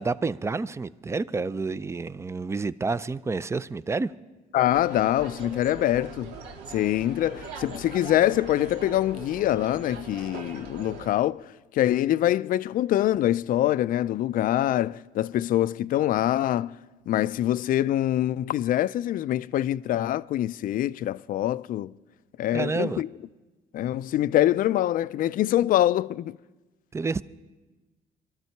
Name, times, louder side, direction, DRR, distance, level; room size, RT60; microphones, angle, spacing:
voice 1, 0.0-4.1 22.5-23.0 26.9-27.2, right 4 dB, 15° right, 0.4 m, -29 dB
voice 2, 4.5-6.3 6.7-16.8 17.1-21.9 22.4-23.1 23.7-26.4, left 13 dB, 55° left, 0.4 m, -24 dB
sound 1, 4.7-11.1, right 4 dB, 85° right, 1.8 m, -41 dB
23.5 x 13.5 x 4.6 m
cardioid pair, 110°, 17 cm